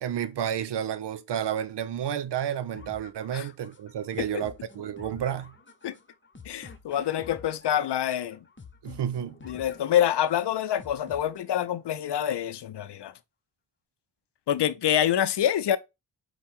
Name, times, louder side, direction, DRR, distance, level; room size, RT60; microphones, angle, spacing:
voice 1, 0.0-5.5 8.8-9.3, right 9 dB, 75° right, 0.6 m, -31 dB
sound 1, 2.7-11.7, left 4 dB, 25° left, 0.9 m, -49 dB
voice 2, 6.4-8.4 9.5-13.1 14.5-15.8, left 10 dB, 75° left, 0.6 m, -26 dB
4.6 x 2.3 x 4.2 m
cardioid pair, 40°, 42 cm